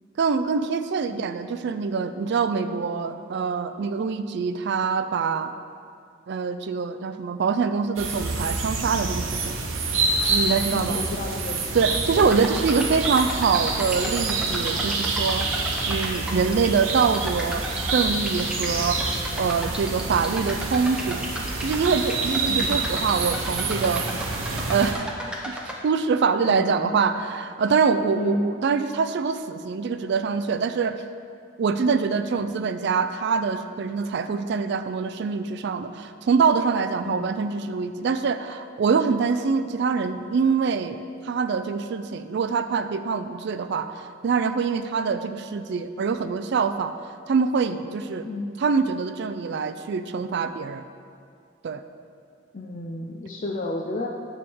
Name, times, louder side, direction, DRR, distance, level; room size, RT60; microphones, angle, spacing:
voice 1, 0.2-5.5 6.3-9.6 10.3-11.0 11.7-15.5 15.9-21.2 21.6-24.1 24.7-25.1 25.5-25.6 25.8-31.0 31.6-41.0 41.2-46.9 47.3-48.3 48.6-50.8 51.6-51.8, right 5 dB, 55° right, 10 dB, 0.3 m, -24 dB
sound 1, 8.0-24.9, right 3 dB, 80° right, 0.9 m, -27 dB
voice 2, 10.7-11.7 12.1-12.3 22.5-22.8 26.5-27.1 28.1-28.4 32.4-32.6 37.0-37.3 48.2-48.5 52.5-54.1, left 2 dB, 40° left, -1 dB, 0.5 m, -31 dB
sound 2, 12.2-25.8, equal, 5° right, 0.7 m, -35 dB
9.6 x 3.6 x 6.9 m, 2.3 s
head